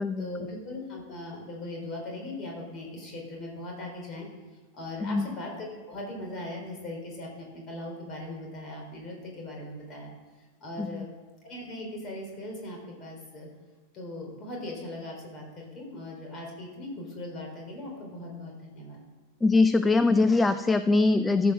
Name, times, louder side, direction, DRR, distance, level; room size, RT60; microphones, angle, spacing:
voice 1, 0.2-4.3 4.7-10.1 10.6-11.1 11.4-13.5 13.9-19.0, left 1 dB, 30° left, 0 dB, 3.8 m, -39 dB
voice 2, 19.4-21.5, left 3 dB, 10° left, 12 dB, 0.4 m, -22 dB
13.0 x 6.2 x 6.2 m, 1.3 s
figure-of-eight pair, 90°, 0 cm